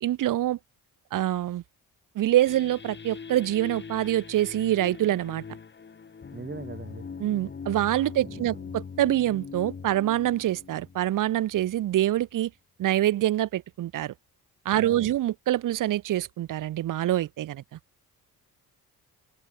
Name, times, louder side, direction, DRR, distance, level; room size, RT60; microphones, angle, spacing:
voice 1, 0.0-0.6 1.1-1.6 2.2-5.4 7.2-12.5 12.8-14.1 14.6-17.8, right 13 dB, 55° right, 0.6 m, -25 dB
sound 1, 2.5-11.8, left 5 dB, 30° left, 1.2 m, -42 dB
voice 2, 6.3-7.1 8.2-8.7 14.8-15.2, right 4 dB, 30° right, 7.0 m, -41 dB
open air
cardioid pair, 95°, 38 cm